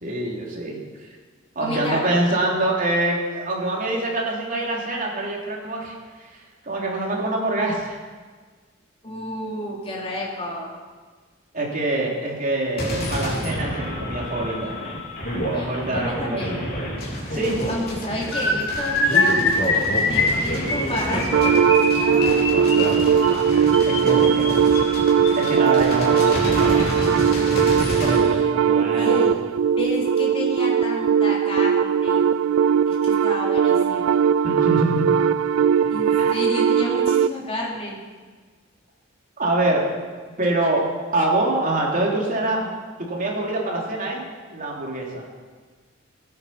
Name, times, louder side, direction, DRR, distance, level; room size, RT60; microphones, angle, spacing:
voice 1, 0.0-1.1 1.5-8.0 11.5-14.8 15.3-16.7 17.3-17.6 23.8-24.7 25.3-27.4 27.7-29.3 34.4-35.2 35.8-36.4 39.4-39.9 40.4-40.9 41.1-42.7 43.1-44.2 44.5-45.2, right 2 dB, 40° right, -2 dB, 3.3 m, -25 dB
voice 2, 1.6-2.2 9.0-10.7 15.5-16.6 17.7-19.5 20.0-23.5 24.3-24.7 27.9-28.5 28.9-29.4 29.8-32.2 32.9-34.2 35.9-38.0, left 1 dB, 30° left, -3 dB, 3.4 m, -31 dB
Homey with Gunfire, 12.8-28.2, equal, 50° left, 3.6 m, -29 dB
sound 1, 18.3-25.5 26.3-26.5 26.8-27.0 27.3-27.5, left 2 dB, 80° left, 4.8 m, -24 dB
sound 2, 21.3-37.3, right 7 dB, 70° right, 0.3 m, -19 dB
18.5 x 9.4 x 5.8 m, 1.5 s
head